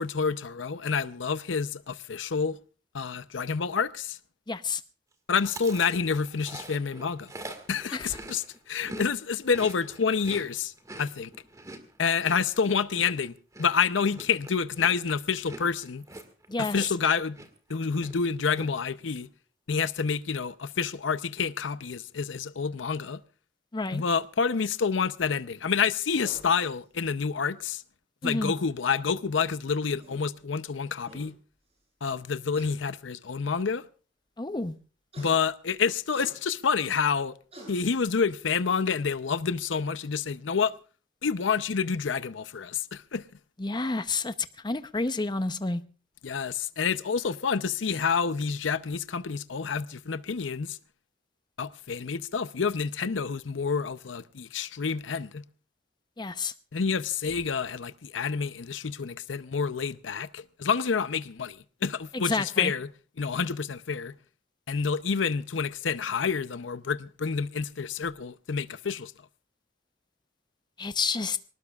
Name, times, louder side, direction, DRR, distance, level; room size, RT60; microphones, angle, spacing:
voice 1, 0.0-2.6 2.9-4.2 5.3-7.3 7.7-11.3 12.0-13.3 13.6-16.0 16.6-17.4 17.7-19.3 19.7-23.2 23.9-27.8 28.2-31.3 32.0-33.8 35.2-37.3 37.7-40.7 41.2-43.2 46.2-50.8 51.6-55.4 56.7-62.9 63.2-64.1 64.7-69.1, left 5 dB, 85° left, 0.6 m, -28 dB
voice 2, 4.5-4.8 7.9-8.1 16.5-16.8 23.7-24.0 28.2-28.5 34.4-34.7 43.6-45.8 56.2-56.5 62.1-62.7 70.8-71.4, left 3 dB, 25° left, 0.7 m, -29 dB
Chewing mastication, 5.4-9.1 9.3-17.1 17.3-17.7 18.0-18.7, right 1 dB, 20° right, 1.8 m, -44 dB
sound 1, 26.2-26.5 27.9-28.0 29.6-29.7 30.0-30.2 30.8-30.9 31.1-31.3 32.5-32.7 33.6-33.7 35.1-35.3 36.1-36.3 37.1-37.2 37.5-37.7, right 1 dB, 35° right, 7.7 m, -46 dB
24.0 x 19.0 x 2.4 m
head